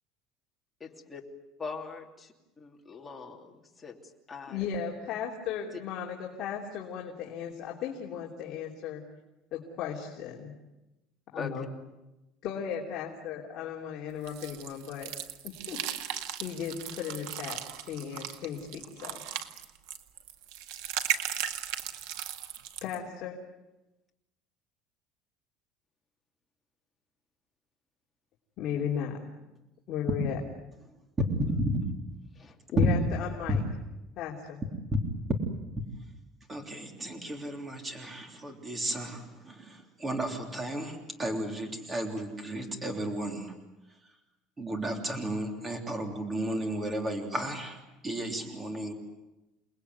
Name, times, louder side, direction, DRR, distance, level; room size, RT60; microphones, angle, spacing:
voice 1, 0.8-1.2 1.6-2.3 2.6-4.7 5.7-5.8 11.3-11.7 32.3-32.6 48.7-48.9, left 4 dB, 10° left, 0 dB, 2.8 m, -42 dB
voice 2, 4.5-9.0 9.5-10.5 11.3-11.7 12.4-15.1 15.4-15.8 16.4-17.6 17.9-19.2 22.8-23.4 28.6-29.2 29.9-30.4 32.7-33.6 34.2-34.6, left 8 dB, 40° left, -3 dB, 3.4 m, -36 dB
sound 1, 14.3-23.0, right 11 dB, 80° right, 1.9 m, -37 dB
voice 3, 36.5-43.5 44.6-47.8 48.0-48.9, equal, 15° right, 4 dB, 3.4 m, -33 dB
29.0 x 20.5 x 9.6 m, 1.0 s
cardioid pair, 180°, 0 cm